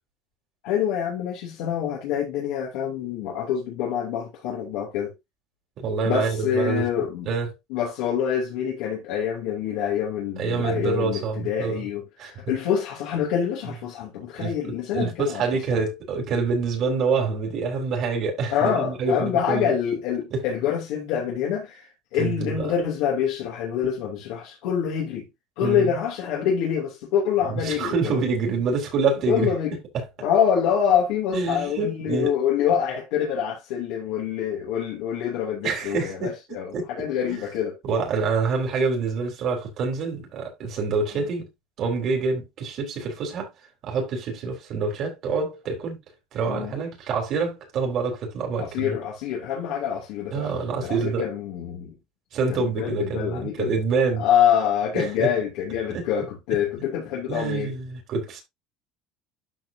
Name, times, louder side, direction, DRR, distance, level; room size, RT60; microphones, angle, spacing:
voice 1, 0.6-5.1 6.0-7.3 7.7-15.4 15.7-15.8 18.5-25.3 25.6-28.2 29.3-29.8 30.2-37.8 46.5-46.7 48.6-51.9 52.5-53.7 54.2-57.7, left 8 dB, 65° left, 2.7 m, -26 dB
voice 2, 5.8-6.9 7.3-7.5 10.4-11.9 12.2-12.3 14.4-14.5 14.9-19.8 20.3-20.4 22.1-22.7 25.6-25.9 27.5-29.5 29.9-30.0 31.3-32.3 35.6-36.3 36.7-36.8 37.3-37.4 37.8-41.5 41.8-43.5 43.8-46.0 46.3-48.9 50.3-51.2 52.3-54.2 54.9-55.3 55.9-56.1 57.3-58.4, right 4 dB, 35° right, 3.9 m, -26 dB
12.5 x 4.7 x 2.7 m
cardioid pair, 180°, 0 cm